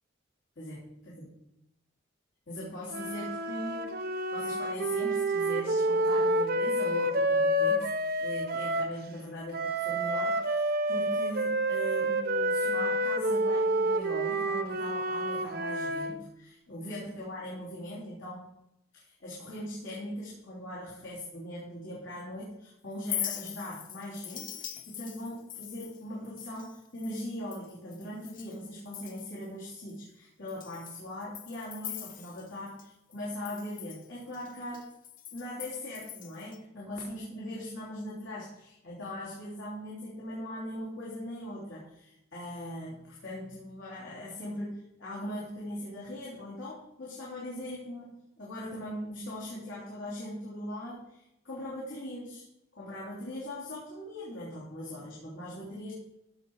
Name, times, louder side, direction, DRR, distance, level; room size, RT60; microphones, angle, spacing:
voice 1, 0.6-1.3 2.5-3.9 4.3-7.9 8.2-18.4 18.9-34.8 35.3-52.5 52.7-55.9, left 1 dB, 70° left, -7 dB, 3.2 m, -40 dB
sound 1, 2.9-9.0 9.5-16.2, right 1 dB, 50° right, 0.8 m, -28 dB
Chink clink, 22.9-28.6 28.9-29.5 29.9-30.0 30.5-32.8 33.1-36.6, left 10 dB, 40° left, 0.8 m, -42 dB
14.5 x 5.9 x 4.7 m, 0.83 s
head